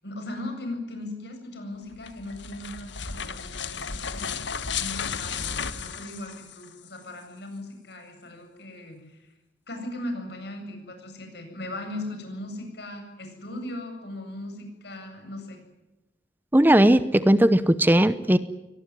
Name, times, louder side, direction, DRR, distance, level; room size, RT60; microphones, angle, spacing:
voice 1, 0.0-4.5 4.8-9.3 9.7-15.6, left 1 dB, 65° left, 5 dB, 8.0 m, -38 dB
sound 1, 1.9-6.9, left 6 dB, 85° left, 1.6 m, -34 dB
voice 2, 16.5-18.4, right 1 dB, 10° right, 14 dB, 0.8 m, -18 dB
23.5 x 20.0 x 9.8 m, 0.99 s
head